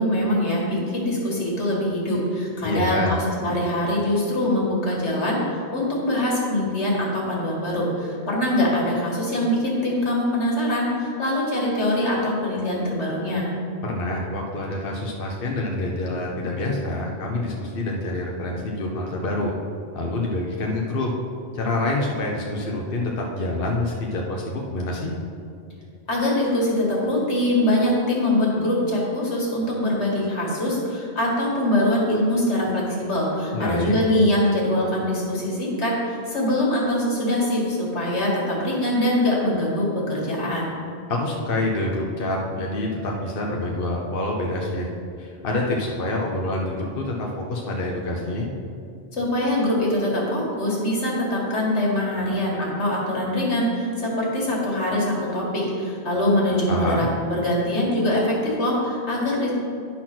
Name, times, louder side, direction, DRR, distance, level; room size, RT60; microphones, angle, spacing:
voice 1, 0.0-5.4 5.7-13.5 26.1-40.7 49.1-59.5, left 1 dB, 80° left, -4 dB, 2.2 m, -23 dB
voice 2, 2.6-3.1 13.8-19.5 19.9-21.1 21.5-25.1 33.5-34.0 41.1-44.9 45.2-48.5 56.7-57.1, left 2 dB, 55° left, -1 dB, 1.0 m, -26 dB
11.0 x 4.3 x 5.9 m, 2.5 s
omnidirectional pair, 1.1 m